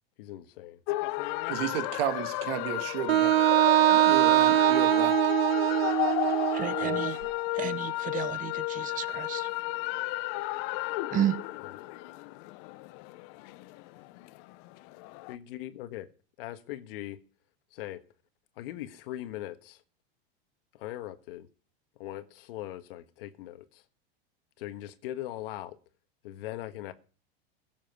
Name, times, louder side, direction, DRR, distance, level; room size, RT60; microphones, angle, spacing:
voice 1, 0.2-0.8 6.8-7.0 10.9-11.1 11.6-11.8 15.3-16.1 16.4-17.2 17.7-18.0 18.6-19.8 20.7-21.5 22.0-23.8 24.6-25.8 26.2-26.9, left 14 dB, 70° left, 1.5 m, -40 dB
sound 1, 0.9-15.3, left 19 dB, 50° left, 0.7 m, -33 dB
voice 2, 1.5-3.4 3.9-5.2, right 12 dB, 70° right, 1.9 m, -33 dB
Wind instrument woodwind instrument, 3.1-7.1, right 13 dB, 90° right, 1.0 m, -23 dB
voice 3, 6.5-7.2 7.5-9.5 11.1-11.4, right 11 dB, 25° right, 1.0 m, -32 dB
16.0 x 7.5 x 5.9 m
supercardioid pair, 135°, 30 cm